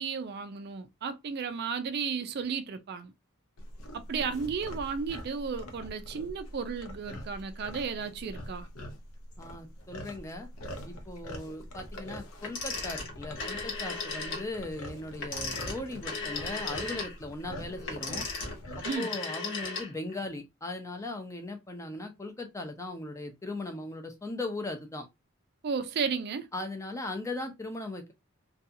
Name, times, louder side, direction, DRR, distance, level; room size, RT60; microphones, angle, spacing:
voice 1, 0.0-3.1 3.9-8.7 18.8-19.1 25.6-26.5, right 5 dB, 50° right, 0.4 m, -34 dB
sound 1, 3.6-19.0, equal, 90° left, 0.6 m, -44 dB
voice 2, 9.4-10.5 10.9-18.3 18.9-25.1 26.5-28.1, left 2 dB, 15° left, 0.4 m, -38 dB
Telephone, 12.4-14.5 15.1-20.2, left 4 dB, 60° left, 0.9 m, -36 dB
2.7 x 2.3 x 2.5 m
head